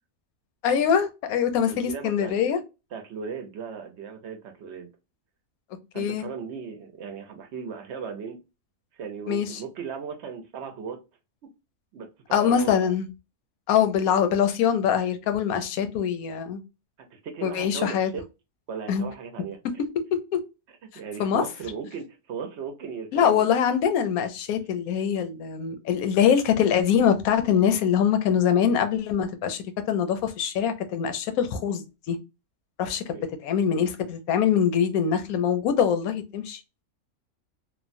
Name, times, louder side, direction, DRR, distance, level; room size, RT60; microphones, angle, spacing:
voice 1, 0.6-2.6 5.9-6.3 9.3-9.6 12.3-13.1 13.7-16.6 17.4-18.1 18.9-19.1 20.3-20.4 21.2-21.4 23.1-32.2 32.8-33.2 33.4-36.6, left 8 dB, 80° left, 1.0 m, -23 dB
voice 2, 1.7-2.3 2.9-4.9 5.9-8.4 8.9-11.0 11.9-12.9 17.1-18.2 18.7-19.6 20.9-23.5 33.1-33.2, right 6 dB, 60° right, 0.8 m, -37 dB
3.1 x 2.1 x 2.5 m
omnidirectional pair, 1.5 m